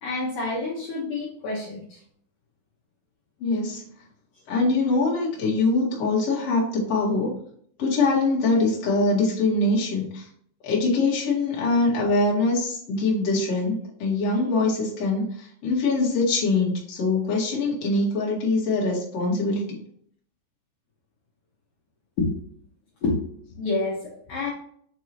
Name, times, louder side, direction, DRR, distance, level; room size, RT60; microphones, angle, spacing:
voice 1, 0.0-2.0 22.2-22.3 23.0-24.5, left 3 dB, 70° left, -5 dB, 1.9 m, -28 dB
voice 2, 3.4-3.9 4.5-7.3 7.8-10.3 10.6-19.8, left 3 dB, 50° left, -4 dB, 2.0 m, -23 dB
7.0 x 4.7 x 3.0 m, 0.63 s
omnidirectional pair, 5.6 m